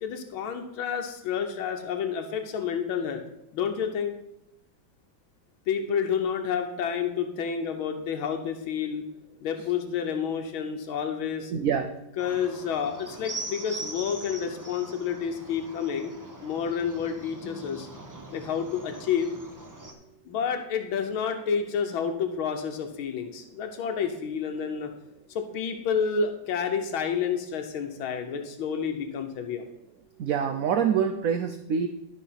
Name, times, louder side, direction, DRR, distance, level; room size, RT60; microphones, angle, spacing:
voice 1, 0.0-3.2 3.5-4.1 5.7-9.0 9.4-11.5 12.2-16.1 16.4-17.9 18.3-19.3 20.3-24.9 25.3-29.6, left 7 dB, 90° left, 5 dB, 1.7 m, -29 dB
voice 2, 11.5-11.9 30.2-31.9, right 7 dB, 70° right, 7 dB, 0.8 m, -25 dB
sound 1, 12.2-19.9, right 2 dB, 15° right, 0.6 m, -42 dB
12.0 x 4.9 x 5.8 m, 0.82 s
omnidirectional pair, 2.2 m